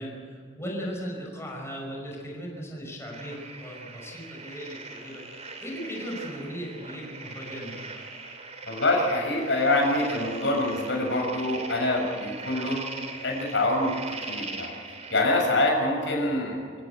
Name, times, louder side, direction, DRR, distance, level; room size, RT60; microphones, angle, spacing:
voice 1, 0.0-7.8, equal, 15° left, -1 dB, 5.4 m, -37 dB
sound 1, 3.1-15.6, right 3 dB, 35° right, 3.4 m, -41 dB
voice 2, 8.7-12.8 13.2-13.9 14.3-14.7 15.1-16.6, left 2 dB, 75° left, 1 dB, 6.6 m, -25 dB
27.0 x 16.5 x 8.1 m, 2.1 s
head